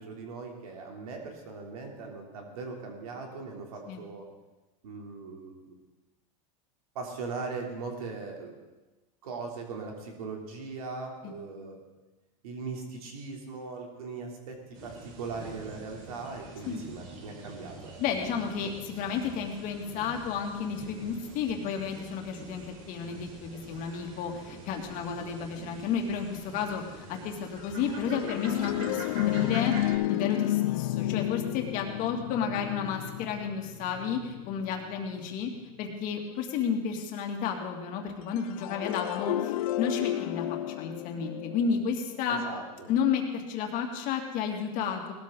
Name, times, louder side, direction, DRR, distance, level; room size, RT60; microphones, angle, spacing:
voice 1, 0.0-4.3 4.8-5.7 6.9-8.5 9.2-11.8 12.4-18.0 42.3-42.9, right 4 dB, 90° right, 1 dB, 3.4 m, -39 dB
sound 1, 14.7-29.9, right 2 dB, 55° right, 4.7 m, -45 dB
voice 2, 18.0-29.7 30.1-35.5 35.8-42.4 42.9-45.1, left 6 dB, 50° left, 2 dB, 2.5 m, -32 dB
sound 2, 27.6-35.2 38.4-42.5, left 15 dB, 75° left, 0.4 m, -32 dB
19.0 x 13.0 x 4.0 m, 1.1 s
supercardioid pair, 125°, 18 cm